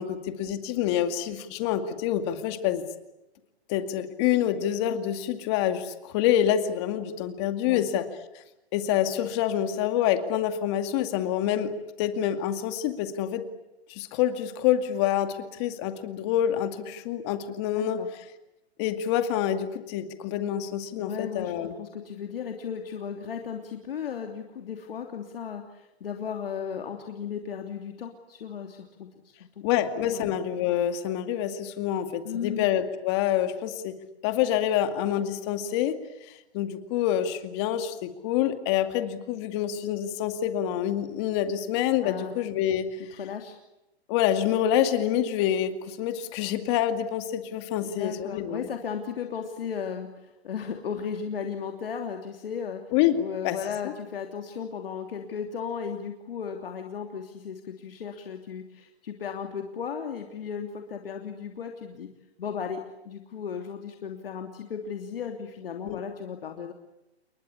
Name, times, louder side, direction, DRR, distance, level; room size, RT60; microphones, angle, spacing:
voice 1, 0.0-2.8 3.7-8.1 8.7-11.7 12.0-13.4 13.9-18.0 18.8-21.7 29.6-34.0 34.2-36.0 36.3-43.0 44.1-48.7 52.9-53.6 53.8-53.9 65.8-66.0, left 10 dB, 25° left, 8 dB, 2.3 m, -27 dB
voice 2, 17.7-18.1 21.0-29.5 30.0-30.3 32.2-32.7 42.0-42.3 43.2-43.6 47.8-52.8 53.1-62.1 62.4-66.7, left 7 dB, 60° left, 4 dB, 3.1 m, -35 dB
29.5 x 22.5 x 8.6 m, 0.94 s
hypercardioid pair, 160°, 32 cm